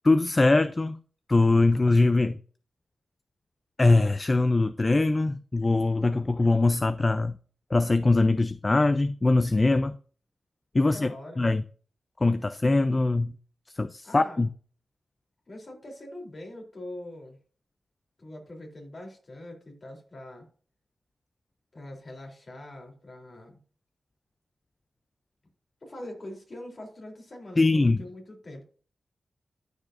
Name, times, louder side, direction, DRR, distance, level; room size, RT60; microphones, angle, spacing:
voice 1, 0.0-1.0 1.3-2.4 3.8-7.4 7.7-10.0 10.7-11.1 11.4-11.6 12.2-13.3 13.8-14.5 27.6-28.0, left 2 dB, 30° left, 0.4 m, -22 dB
voice 2, 10.8-11.4 14.0-14.4 15.5-17.4 18.2-20.5 21.7-23.6 25.8-28.6, left 1 dB, 50° left, 3.3 m, -43 dB
13.5 x 5.0 x 2.5 m
cardioid pair, 70°, 0 cm